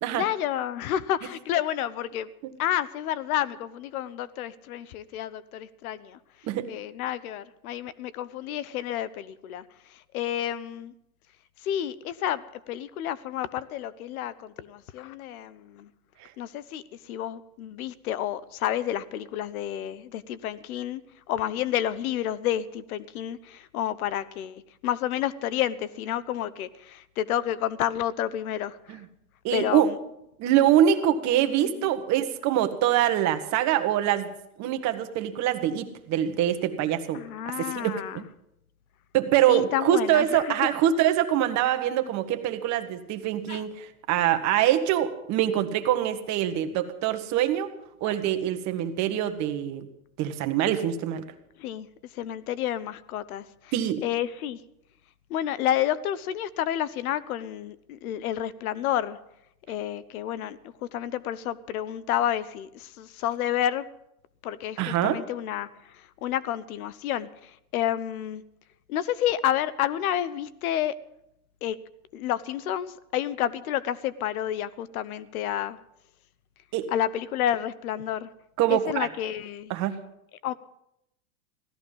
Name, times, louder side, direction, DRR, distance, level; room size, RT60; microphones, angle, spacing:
voice 1, 0.1-2.3 2.6-6.2 6.7-9.6 9.9-10.9 11.6-15.9 16.4-21.0 21.3-29.0 29.5-30.0 31.6-31.9 37.1-38.2 39.5-40.5 43.5-43.6 48.0-48.2 51.6-51.9 52.1-53.7 54.0-54.6 55.3-59.2 59.7-63.8 64.4-68.4 68.9-70.9 71.6-71.8 72.1-75.8 76.9-78.3 78.7-79.7 80.4-80.5, left 11 dB, 75° left, 18 dB, 0.9 m, -30 dB
voice 2, 29.4-29.9 30.4-34.3 34.6-38.2 39.1-47.7 48.0-49.9 50.2-51.2 53.7-54.0 64.8-65.2 76.7-76.9 78.6-79.1 79.7-80.0, right 11 dB, 40° right, 8 dB, 1.4 m, -24 dB
16.5 x 13.5 x 5.5 m, 0.81 s
supercardioid pair, 135°, 44 cm